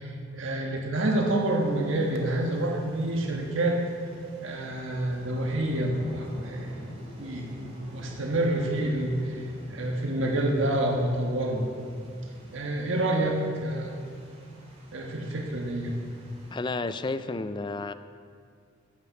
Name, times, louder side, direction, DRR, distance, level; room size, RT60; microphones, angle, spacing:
voice 1, 0.0-3.8 4.4-9.4 9.7-11.7 12.5-13.9 14.9-15.9, right 1 dB, 80° right, 1 dB, 1.4 m, -28 dB
sound 1, 1.2-16.6, right 1 dB, 30° right, 2.4 m, -48 dB
voice 2, 16.5-17.9, left 3 dB, 25° left, 12 dB, 0.4 m, -31 dB
12.5 x 8.8 x 5.8 m, 2.2 s
head